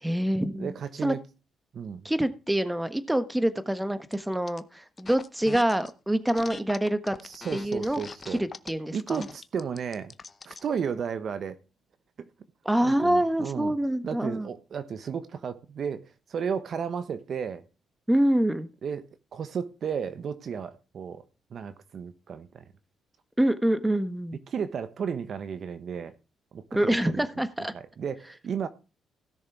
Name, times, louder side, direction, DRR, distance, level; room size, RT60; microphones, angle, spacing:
voice 1, 0.0-0.7 1.0-1.1 2.0-7.2 7.5-8.0 8.3-9.2 12.6-14.5 18.1-18.7 23.4-24.4 26.7-27.7, right 1 dB, 5° right, 1.3 m, -26 dB
voice 2, 0.6-1.2 1.7-2.1 7.2-8.5 8.9-10.1 10.4-11.6 12.2-12.3 12.8-13.8 14.0-17.6 18.8-21.2 21.5-22.6 24.5-26.1 26.5-27.4 27.7-28.7, right 7 dB, 55° right, 1.2 m, -34 dB
sound 1, 4.1-4.6 5.0-5.9 6.2-10.7, left 4 dB, 30° left, 0.8 m, -42 dB
16.5 x 6.6 x 4.7 m
cardioid pair, 90°, 0 cm